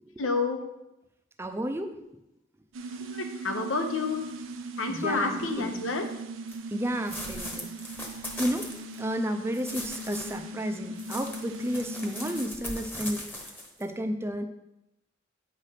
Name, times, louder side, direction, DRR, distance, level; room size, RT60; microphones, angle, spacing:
voice 1, 0.2-0.6 3.0-4.3 4.8-6.1, left 3 dB, 85° left, 5 dB, 0.9 m, -29 dB
voice 2, 1.4-2.0 4.9-5.8 6.7-7.7 8.4-8.7 9.0-13.2 13.8-14.4, equal, 15° right, 6 dB, 0.5 m, -32 dB
sound 1, 2.7-12.5, right 1 dB, 80° right, 0.6 m, -39 dB
sound 2, 6.5-6.6 7.1-9.0 9.5-10.4 11.0-13.8, left 1 dB, 10° left, 1.0 m, -39 dB
8.6 x 3.3 x 5.7 m, 0.90 s
head